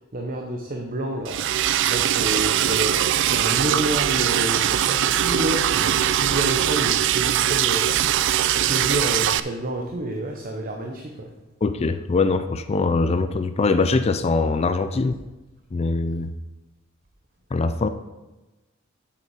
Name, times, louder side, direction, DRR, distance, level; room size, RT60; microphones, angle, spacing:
voice 1, 0.1-7.9 8.5-11.3, right 1 dB, 45° right, 1 dB, 0.9 m, -29 dB
Liquid, 1.3-9.4, right 11 dB, 65° right, 0.4 m, -21 dB
voice 2, 11.6-15.2 15.7-16.3 17.5-17.9, left 3 dB, 30° left, 11 dB, 0.4 m, -22 dB
7.8 x 7.0 x 4.8 m, 1.1 s
head